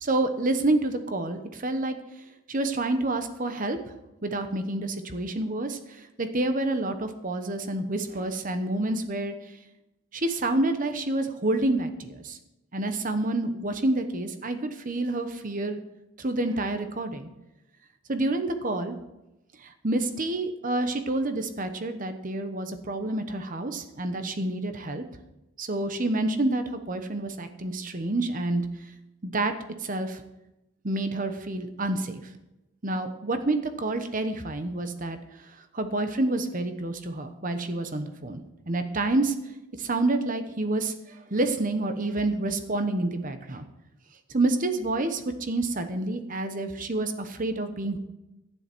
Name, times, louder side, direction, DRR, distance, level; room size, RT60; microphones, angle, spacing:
voice 1, 0.0-2.0 2.5-3.8 4.2-9.3 10.1-12.4 12.7-15.8 16.2-17.3 18.1-19.0 19.6-25.0 25.6-28.6 29.2-29.5 29.8-30.2 30.8-32.2 32.8-38.4 38.7-39.3 39.8-43.7 44.3-48.0, right 2 dB, 40° right, 8 dB, 1.0 m, -28 dB
11.5 x 10.0 x 4.5 m, 0.94 s
head